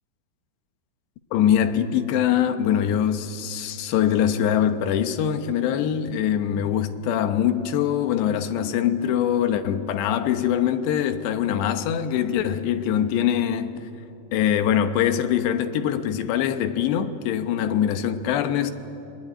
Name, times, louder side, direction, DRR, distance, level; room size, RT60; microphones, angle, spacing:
voice 1, 1.3-13.9 14.3-18.7, left 9 dB, 90° left, 3.3 m, -23 dB
27.0 x 20.5 x 9.9 m
omnidirectional pair, 4.8 m